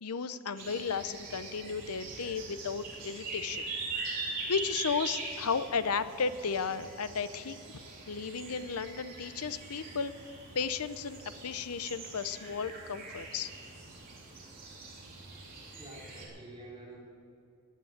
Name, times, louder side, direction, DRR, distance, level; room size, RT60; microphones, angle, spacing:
voice 1, 0.0-3.7 4.1-4.2 4.5-7.8 8.1-10.1 10.5-13.5, left 5 dB, 80° left, 13 dB, 0.7 m, -34 dB
sound 1, 0.6-16.3, right 3 dB, 40° right, 3.6 m, -42 dB
voice 2, 15.7-17.0, right 1 dB, 20° right, -5 dB, 3.8 m, -48 dB
16.5 x 9.7 x 7.3 m, 2.5 s
head